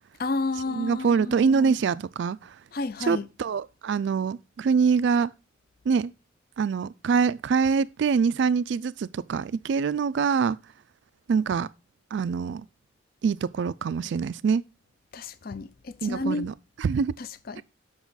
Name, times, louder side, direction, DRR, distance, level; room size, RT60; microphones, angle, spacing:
voice 1, 0.2-1.8 2.7-3.3 15.1-16.5 17.2-17.6, left 3 dB, 45° left, 0.4 m, -31 dB
voice 2, 0.7-2.5 3.0-5.3 5.9-6.1 6.6-10.6 11.3-11.7 12.1-12.7 13.2-14.6 16.0-17.1 17.6-17.7, right 5 dB, 60° right, 0.3 m, -24 dB
7.1 x 5.5 x 3.9 m
head